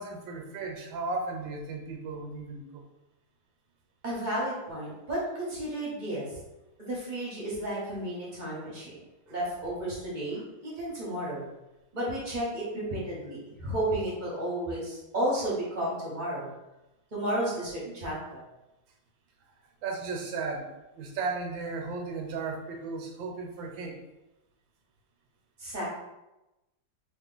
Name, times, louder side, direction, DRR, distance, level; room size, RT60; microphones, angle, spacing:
voice 1, 0.0-2.8 19.8-24.0, right 3 dB, 80° right, 2 dB, 1.4 m, -35 dB
voice 2, 4.0-6.4 6.8-9.0 9.3-11.5 11.9-16.5 17.1-18.4 25.6-25.8, right 1 dB, 35° right, -6 dB, 0.8 m, -32 dB
3.0 x 2.5 x 3.8 m, 0.98 s
omnidirectional pair, 2.1 m